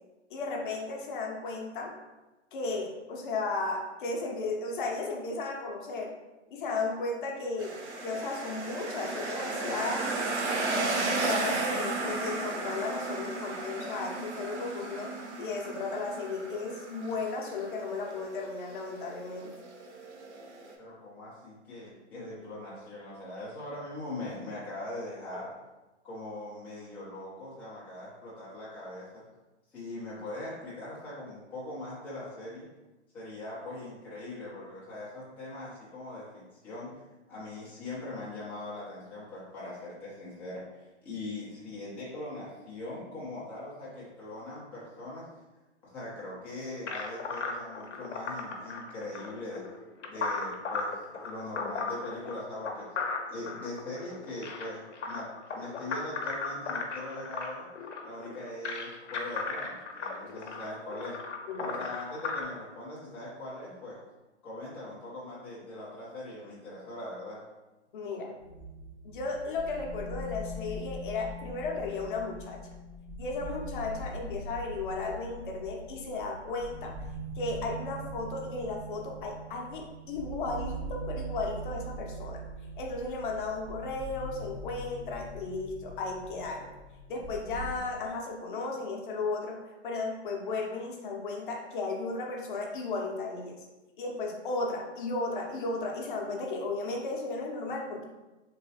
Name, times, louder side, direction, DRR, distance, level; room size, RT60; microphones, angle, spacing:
voice 1, 0.3-1.9 2.5-6.1 6.5-10.1 10.7-15.1 15.4-19.5 61.5-61.9 67.9-68.3 69.0-72.6 73.2-77.0 77.4-82.4 82.8-86.7 87.1-89.6 89.8-93.6 94.0-98.0, left 3 dB, 45° left, 0 dB, 0.7 m, -35 dB
sound 1, 7.6-20.7, right 3 dB, 70° right, 0.7 m, -34 dB
voice 2, 20.8-25.5 26.0-29.2 29.7-32.7 33.1-36.9 37.3-45.3 45.8-49.6 50.0-52.9 53.3-57.7 58.0-61.2 61.6-64.0 64.4-67.4, left 2 dB, 5° left, -9 dB, 0.5 m, -41 dB
sound 2, 46.9-62.4, left 4 dB, 85° left, 0.7 m, -36 dB
sound 3, 68.4-87.8, right 1 dB, 55° right, 1.0 m, -42 dB
3.1 x 3.0 x 2.7 m, 1.1 s
hypercardioid pair, 140°, 35 cm